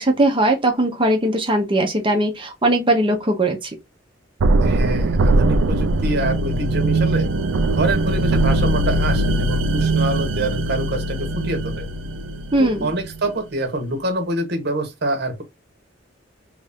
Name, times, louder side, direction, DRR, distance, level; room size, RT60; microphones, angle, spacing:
voice 1, 0.0-3.7 12.5-12.9, right 1 dB, 25° right, 0.8 m, -19 dB
sound 1, 4.4-13.3, right 2 dB, 85° right, 0.4 m, -20 dB
voice 2, 4.6-7.3 7.7-11.9 12.6-15.4, right 1 dB, 60° right, 1.0 m, -26 dB
3.2 x 2.6 x 3.4 m
head